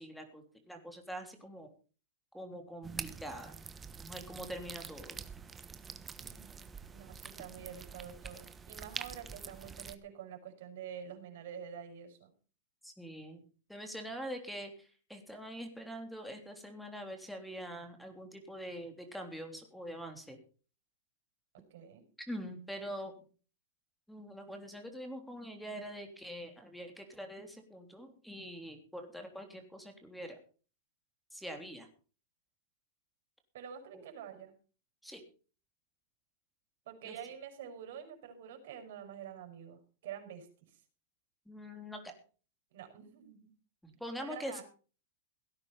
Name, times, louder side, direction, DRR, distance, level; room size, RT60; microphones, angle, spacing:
voice 1, 0.0-1.7 2.3-3.6 4.0-5.2 12.8-13.4 13.7-20.4 22.2-23.1 24.1-30.4 31.3-31.9 33.9-34.0 35.0-35.2 37.1-37.2 41.5-42.1 43.8-44.6, equal, ahead, 5 dB, 3.4 m, -44 dB
sound 1, 2.8-9.9, right 5 dB, 15° right, 1.2 m, -46 dB
voice 2, 6.2-12.3 21.7-22.0 33.5-34.5 36.8-40.5 42.7-43.4 44.2-44.6, right 8 dB, 65° right, 6 dB, 6.1 m, -47 dB
17.5 x 9.8 x 5.5 m, 0.38 s
supercardioid pair, 150°, 0 cm